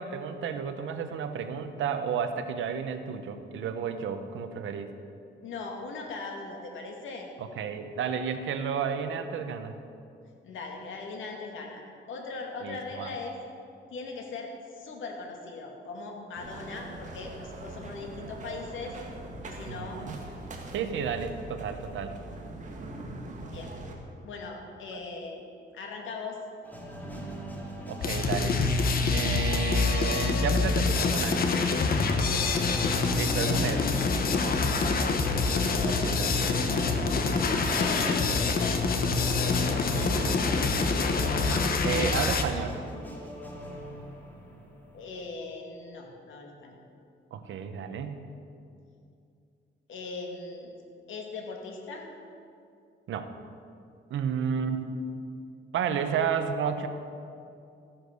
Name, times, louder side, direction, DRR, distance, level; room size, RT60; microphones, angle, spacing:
voice 1, 0.0-4.9 7.4-9.8 12.6-13.1 19.7-20.2 20.7-22.2 24.9-25.0 27.9-28.6 29.1-31.5 33.2-33.9 36.0-36.6 39.9-40.4 41.8-42.7 47.3-48.2 53.1-53.3 54.1-55.0 55.7-56.9, right 7 dB, 80° right, 8 dB, 1.1 m, -32 dB
voice 2, 5.4-7.3 10.4-11.8 12.1-13.4 13.9-19.0 19.4-20.0 23.5-23.7 24.2-25.4 25.7-26.4 32.2-32.6 34.6-34.9 35.7-36.1 37.8-38.9 44.9-46.8 49.9-50.7 51.1-52.1, left 3 dB, 80° left, 1 dB, 2.3 m, -39 dB
sound 1, 16.4-23.9, right 2 dB, 40° right, 2.0 m, -42 dB
sound 2, 26.6-45.3, equal, 10° left, 2.2 m, -40 dB
sound 3, 28.0-42.4, left 4 dB, 50° left, 1.1 m, -26 dB
14.5 x 10.0 x 6.7 m, 2.5 s
cardioid pair, 140°, 20 cm